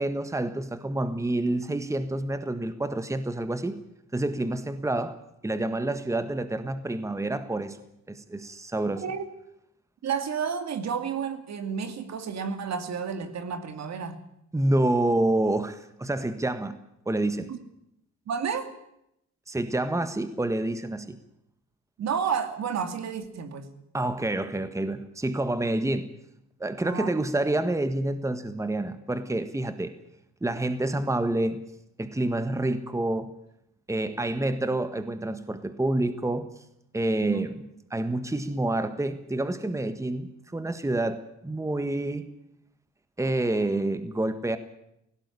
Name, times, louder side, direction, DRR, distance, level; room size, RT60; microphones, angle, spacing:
voice 1, 0.0-3.8 4.1-5.2 5.4-7.8 8.1-9.0 14.5-16.8 17.0-17.5 19.5-21.2 23.9-26.1 26.6-29.9 30.4-31.6 32.0-33.3 33.9-36.5 36.9-37.5 37.9-42.3 43.2-44.6, right 2 dB, 10° right, 11 dB, 1.5 m, -28 dB
voice 2, 10.0-14.2 17.5-17.6 18.3-18.7 22.0-23.7 26.8-27.1 37.2-37.4, right 6 dB, 60° right, 8 dB, 2.5 m, -31 dB
17.5 x 16.5 x 9.7 m, 0.80 s
cardioid pair, 90°, 30 cm